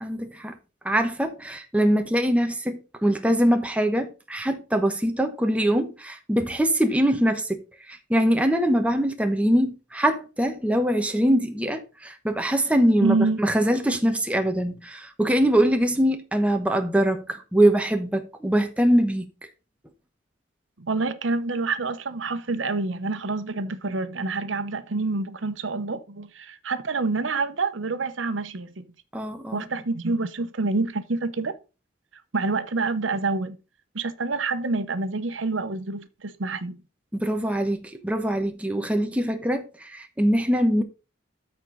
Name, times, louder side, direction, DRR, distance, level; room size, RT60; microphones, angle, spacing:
voice 1, 0.0-0.5 0.8-7.6 7.9-19.3 29.1-29.6 37.2-40.8, equal, 5° right, 1.0 m, -23 dB
voice 2, 13.0-13.4 20.8-28.9 29.5-31.6 32.3-33.6 33.9-36.8, right 3 dB, 85° right, 0.9 m, -27 dB
13.5 x 4.5 x 3.9 m
head